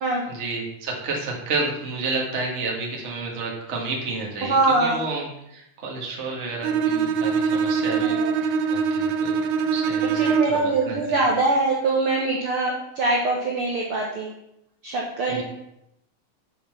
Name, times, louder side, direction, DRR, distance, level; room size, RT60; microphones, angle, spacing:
voice 1, 0.3-9.4 9.7-11.0 15.3-15.4, right 3 dB, 25° right, -2 dB, 1.6 m, -31 dB
voice 2, 4.4-5.0 8.0-8.4 10.1-14.3 14.8-15.4, right 3 dB, 55° right, -2 dB, 1.7 m, -23 dB
Bowed string instrument, 6.6-10.7, right 6 dB, 75° right, 1.9 m, -23 dB
7.4 x 6.7 x 5.9 m, 0.82 s
omnidirectional pair, 3.8 m